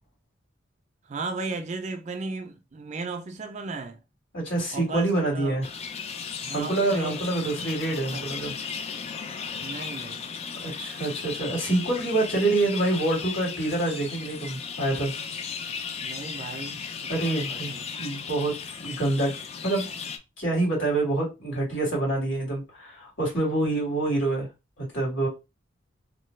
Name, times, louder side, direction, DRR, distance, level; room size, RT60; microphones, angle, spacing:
voice 1, 1.0-4.0 4.7-5.6 6.4-7.2 7.6-7.7 8.1-8.4 9.6-10.2 16.0-17.8, right 3 dB, 35° right, 0.4 m, -36 dB
voice 2, 4.3-5.6 6.5-8.5 10.6-15.1 17.1-17.7 18.0-18.5 18.8-19.3 19.6-19.9 20.4-24.5 24.8-25.3, right 2 dB, 85° left, 2.0 m, -26 dB
sound 1, 5.6-20.2, left 6 dB, 35° left, 0.3 m, -36 dB
3.1 x 2.2 x 3.1 m
head